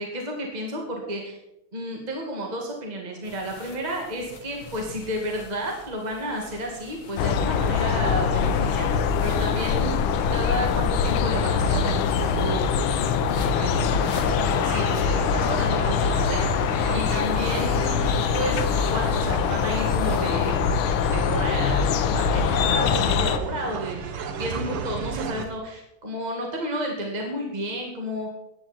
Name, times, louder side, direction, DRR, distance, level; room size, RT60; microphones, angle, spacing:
voice 1, 0.0-1.4 1.7-8.9 9.2-10.0 10.3-12.7 13.6-16.4 16.9-20.6 21.1-21.9 22.1-24.0 24.4-28.3, right 1 dB, 20° right, 0 dB, 2.1 m, -31 dB
sound 1, 3.2-20.5, left 3 dB, 40° left, 1.7 m, -45 dB
sound 2, 7.2-23.4, left 6 dB, 75° left, 1.6 m, -23 dB
sound 3, 13.6-25.5, right 5 dB, 90° right, 2.0 m, -36 dB
15.0 x 10.5 x 4.3 m, 0.84 s
omnidirectional pair, 2.3 m